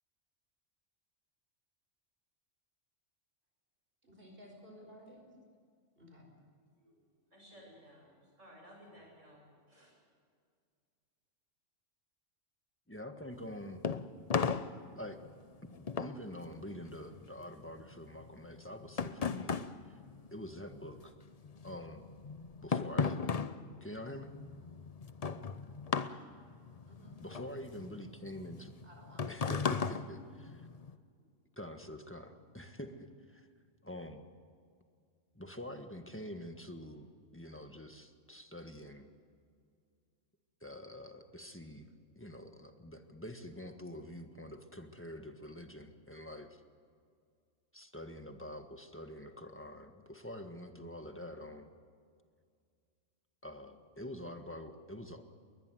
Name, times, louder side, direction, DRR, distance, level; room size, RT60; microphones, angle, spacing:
voice 1, 4.0-5.3 6.0-6.3 26.9-27.2 28.8-29.5, equal, 45° right, 2 dB, 5.3 m, -55 dB
voice 2, 6.8-10.0, equal, 75° right, -1 dB, 7.9 m, -58 dB
voice 3, 12.9-13.8 14.9-15.2 16.0-19.5 19.8-19.9 20.3-21.1 21.6-22.1 22.6-23.5 23.8-24.3 27.2-28.7 29.3-30.2 31.6-33.5 33.8-34.2 35.3-39.1 40.6-41.9 42.1-46.6 47.7-51.7 53.4-55.2, left 1 dB, 10° left, 6 dB, 1.5 m, -46 dB
sound 1, 13.3-21.0 21.3-30.9, left 5 dB, 35° left, 0.7 m, -37 dB
21.5 x 20.0 x 7.8 m, 2.2 s
omnidirectional pair, 1.3 m